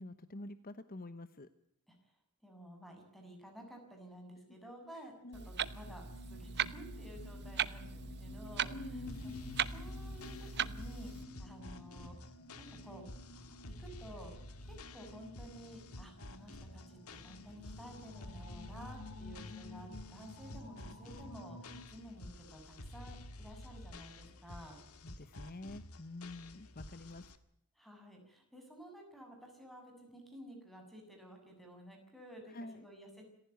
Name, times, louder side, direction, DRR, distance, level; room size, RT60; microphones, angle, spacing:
voice 1, 0.0-1.5 5.2-5.5 8.7-9.2 25.0-27.3 32.5-32.9, left 1 dB, 40° left, 12 dB, 1.0 m, -47 dB
voice 2, 2.4-9.3 9.7-12.3 12.6-13.0 13.8-14.3 14.6-24.8 27.8-33.3, equal, ahead, 3 dB, 7.2 m, -53 dB
Clock, 5.3-11.2, right 8 dB, 50° right, 1.0 m, -39 dB
sound 1, 5.6-21.8, left 2 dB, 60° left, 5.9 m, -51 dB
sound 2, 9.1-27.4, left 1 dB, 80° left, 1.8 m, -51 dB
27.5 x 15.5 x 9.3 m, 0.75 s
head